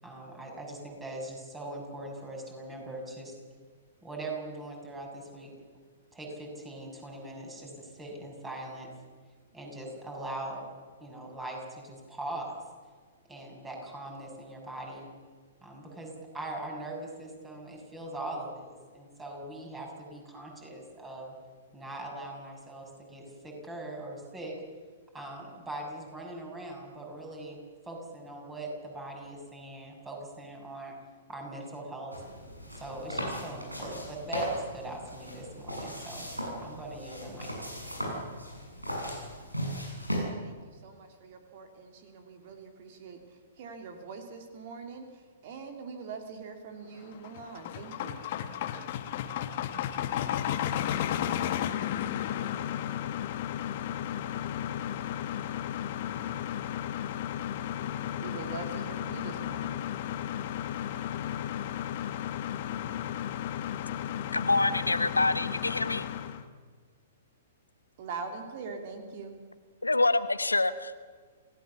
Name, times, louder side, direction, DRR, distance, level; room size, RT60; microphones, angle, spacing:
voice 1, 0.0-3.3 4.0-5.5 6.1-8.9 9.5-10.6 11.0-12.6 13.3-15.1 15.6-21.3 21.7-24.6 25.1-27.6 27.8-31.0 31.3-32.2 32.8-36.3 36.6-37.5, right 2 dB, 10° right, 1 dB, 6.9 m, -41 dB
sound 1, 32.1-40.2, equal, 90° right, 8.0 m, -37 dB
voice 2, 40.4-43.2 43.6-48.3 57.9-59.8 68.0-69.4, right 5 dB, 45° right, 4 dB, 2.9 m, -43 dB
sound 2, 47.0-66.4, left 10 dB, 45° left, 1.5 m, -34 dB
voice 3, 64.3-66.1 69.8-71.0, left 2 dB, 80° left, 12 dB, 1.1 m, -26 dB
28.0 x 17.5 x 7.2 m, 1.5 s
figure-of-eight pair, 110°, 0 cm